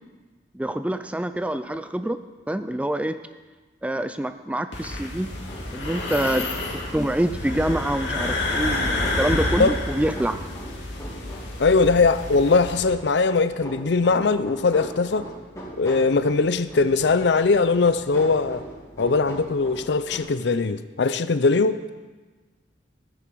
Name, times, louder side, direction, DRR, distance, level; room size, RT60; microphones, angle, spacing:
voice 1, 0.5-2.2 2.5-3.2 3.8-5.3 5.7-6.5 6.9-10.4, right 1 dB, 5° right, 11 dB, 0.3 m, -26 dB
sound 1, 4.7-12.8, left 2 dB, 85° left, 2.3 m, -29 dB
sound 2, 5.5-20.2, equal, 15° left, 3.1 m, -41 dB
voice 2, 11.6-15.3 15.8-18.6 19.0-21.8, left 4 dB, 70° left, 13 dB, 0.5 m, -20 dB
14.5 x 10.0 x 4.7 m, 1.3 s
head